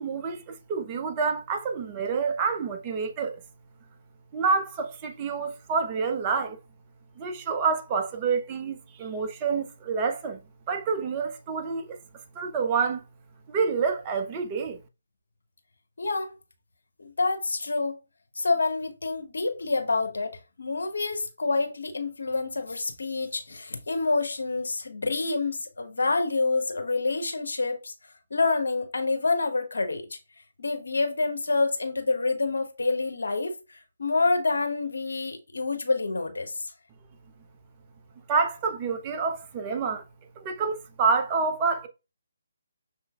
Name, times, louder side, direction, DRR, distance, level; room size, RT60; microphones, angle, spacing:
voice 1, 0.0-3.4 4.3-6.6 7.2-10.4 10.7-12.0 12.4-13.0 13.5-14.8 38.3-40.0 40.4-41.9, right 5 dB, 25° right, 0.6 m, -28 dB
voice 2, 16.0-16.3 17.0-18.0 18.4-27.9 28.3-30.2 30.6-36.5, left 3 dB, 75° left, 1.0 m, -27 dB
6.2 x 3.1 x 2.4 m
figure-of-eight pair, 145°, 0 cm